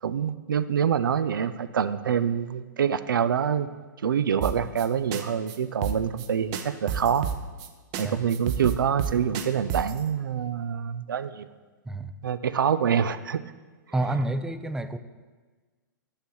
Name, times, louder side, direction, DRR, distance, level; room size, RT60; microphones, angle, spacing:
voice 1, 0.0-3.7 4.0-7.3 8.0-11.5 12.2-13.4 14.1-14.2, right 8 dB, 80° right, 14 dB, 0.4 m, -26 dB
sound 1, 4.4-4.9 5.1-5.2 5.5-5.6 5.8-6.3 6.5-7.7 7.9-8.0 8.3-10.0, right 8 dB, 40° right, 0.7 m, -30 dB
voice 2, 13.9-15.0, right 1 dB, 5° right, 10 dB, 0.3 m, -28 dB
6.7 x 5.6 x 6.3 m, 1.4 s
hypercardioid pair, 115°, 11 cm